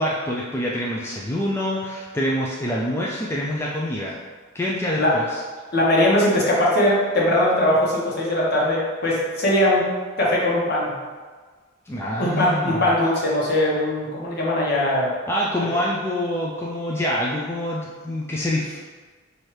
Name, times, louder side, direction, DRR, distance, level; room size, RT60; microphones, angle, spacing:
voice 1, 0.0-4.2 4.5-5.4 11.9-12.9 15.3-18.8, equal, 10° left, -5 dB, 0.3 m, -26 dB
voice 2, 5.7-9.9 10.2-10.9 12.2-15.1, left 1 dB, 50° left, -5 dB, 1.1 m, -20 dB
5.7 x 2.7 x 3.2 m, 1.4 s
head